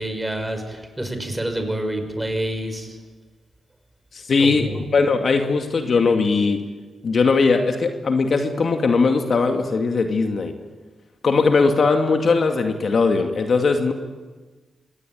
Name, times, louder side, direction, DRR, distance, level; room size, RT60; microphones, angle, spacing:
voice 1, 0.0-2.9 4.4-4.8, right 1 dB, 15° right, 6 dB, 5.7 m, -27 dB
voice 2, 4.1-6.6 7.0-10.5 11.2-13.9, left 4 dB, 60° left, 5 dB, 2.3 m, -19 dB
25.0 x 18.5 x 9.2 m, 1.3 s
supercardioid pair, 55°, 0 cm